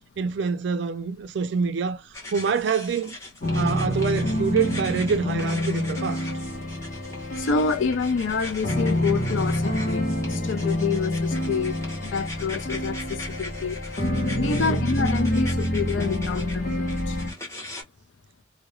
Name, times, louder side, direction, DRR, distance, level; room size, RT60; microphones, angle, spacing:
voice 1, 0.2-2.0 2.3-3.2 3.5-6.3 14.4-14.9, right 5 dB, 60° right, 0.3 m, -26 dB
sound 1, 2.1-17.8, left 2 dB, 15° left, 0.8 m, -41 dB
sound 2, 3.4-17.3, left 1 dB, 45° left, 0.9 m, -27 dB
voice 2, 7.4-13.8 14.4-17.2, left 5 dB, 70° left, 0.4 m, -28 dB
2.3 x 2.0 x 2.8 m
head